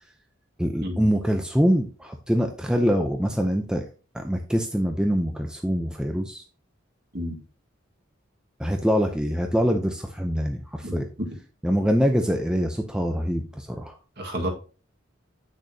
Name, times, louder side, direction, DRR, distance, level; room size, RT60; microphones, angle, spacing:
voice 1, 0.6-3.8 4.1-6.4 8.6-11.1 11.6-14.0, equal, 5° right, 0.5 m, -24 dB
voice 2, 10.8-11.3 14.2-14.5, equal, 50° right, 1.7 m, -30 dB
8.7 x 6.3 x 2.8 m
head